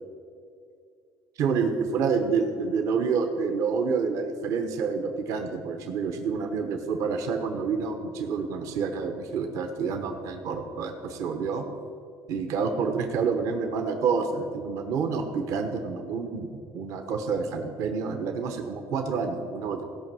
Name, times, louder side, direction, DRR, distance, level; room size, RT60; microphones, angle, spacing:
voice 1, 1.4-11.6 12.3-19.8, right 5 dB, 65° right, 5 dB, 1.0 m, -28 dB
15.5 x 5.5 x 7.5 m, 2.4 s
cardioid pair, 120°, 6 cm